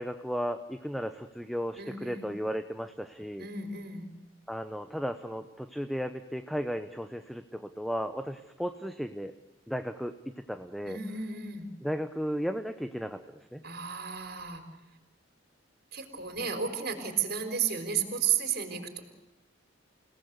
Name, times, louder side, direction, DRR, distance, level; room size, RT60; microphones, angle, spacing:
voice 1, 0.0-3.5 4.5-9.3 9.7-10.1 10.5-11.0 11.8-13.6, equal, ahead, 8 dB, 0.9 m, -35 dB
voice 2, 1.8-2.3 3.4-4.1 10.9-11.7 13.6-14.6 15.9-19.0, right 7 dB, 55° right, 6 dB, 4.2 m, -33 dB
29.0 x 18.5 x 8.1 m, 1.0 s
head